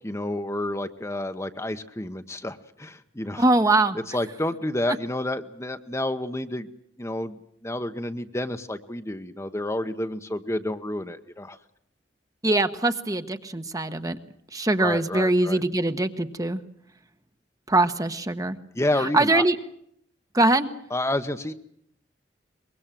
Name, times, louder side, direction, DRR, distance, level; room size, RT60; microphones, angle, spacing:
voice 1, 0.0-3.4 4.1-6.7 7.0-11.6 14.8-15.6 18.7-19.4 20.9-21.5, left 1 dB, 15° left, 8 dB, 1.0 m, -30 dB
voice 2, 3.4-4.0 12.4-14.2 14.5-16.6 17.7-18.6 19.1-19.6 20.3-20.7, right 2 dB, 20° right, 9 dB, 1.1 m, -22 dB
24.0 x 22.0 x 7.6 m, 0.70 s
head